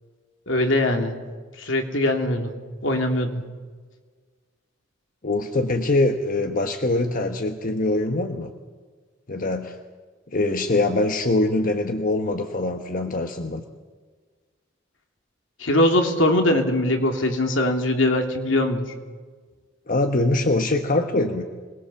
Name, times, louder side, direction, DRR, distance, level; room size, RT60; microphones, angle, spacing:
voice 1, 0.5-1.2 1.6-2.5 2.8-3.4 15.6-18.9, left 1 dB, 75° left, 4 dB, 2.8 m, -21 dB
voice 2, 5.2-8.5 9.3-9.8 10.3-13.6 19.9-21.4, left 2 dB, 45° left, 5 dB, 1.2 m, -23 dB
26.0 x 20.0 x 7.1 m, 1.5 s
head